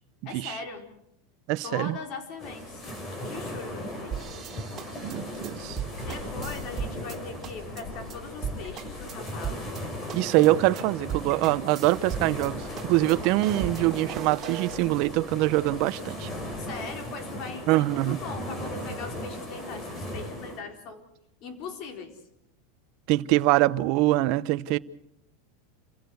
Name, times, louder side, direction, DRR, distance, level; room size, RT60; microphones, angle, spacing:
voice 1, 0.2-0.8 1.6-2.8 3.2-4.2 6.1-9.8 16.6-21.0 21.4-22.2, left 4 dB, 45° left, 4.4 m, -40 dB
voice 2, 1.5-2.0 5.0-5.8 10.1-16.3 17.7-18.2 23.1-24.8, right 17 dB, 50° right, 0.9 m, -24 dB
sound 1, 2.4-20.6, left 1 dB, 25° left, 4.6 m, -37 dB
sound 2, 4.1-7.2 7.4-7.8 8.1-8.2 8.4-9.8 10.1-10.5 10.8-10.9 11.1-12.5 12.8-14.8, right 9 dB, 25° right, 3.6 m, -37 dB
29.0 x 16.5 x 7.9 m
supercardioid pair, 145°, 0 cm